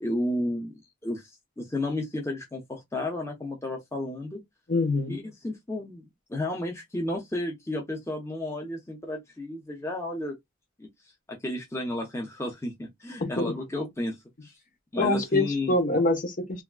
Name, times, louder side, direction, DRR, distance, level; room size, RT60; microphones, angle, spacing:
voice 1, 0.0-1.3 1.6-4.4 5.1-6.0 6.3-10.4 10.8-10.9 11.3-14.2 14.4-14.5 14.9-15.7, left 1 dB, 15° left, 0.6 m, -32 dB
voice 2, 4.7-5.2 13.2-13.5 15.0-16.6, left 2 dB, 45° left, 0.9 m, -25 dB
3.4 x 2.4 x 2.2 m
head